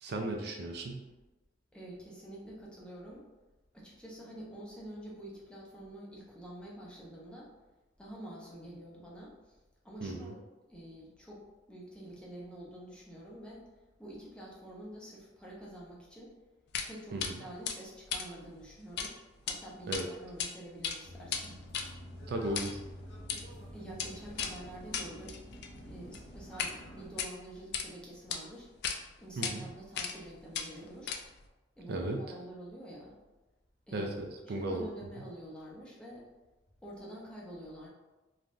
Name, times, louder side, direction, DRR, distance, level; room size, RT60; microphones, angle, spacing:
voice 1, 0.0-1.0 10.0-10.3 17.1-17.4 19.9-20.1 22.3-22.8 29.4-29.6 31.9-32.2 33.9-34.9, right 2 dB, 60° right, 2 dB, 0.4 m, -35 dB
voice 2, 1.7-3.2 3.7-7.5 8.0-9.6 9.8-10.4 10.7-13.6 14.0-16.3 16.9-19.1 19.4-21.6 23.7-25.4 25.8-28.7 29.2-31.2 31.8-33.2 33.9-34.1 34.4-36.3 36.8-37.9, right 1 dB, 5° left, -5 dB, 0.6 m, -47 dB
sound 1, 16.7-16.9 17.2-17.3 17.7-19.1 19.4-19.6 19.9-20.5 20.8-26.8 27.1-27.9 28.3-28.4 28.8-29.0 29.4-29.5 30.0-30.3 30.5-31.5, left 7 dB, 60° left, 0.3 m, -37 dB
sound 2, 21.0-27.1, equal, 85° left, 0.7 m, -49 dB
3.3 x 2.2 x 2.5 m, 1.1 s
head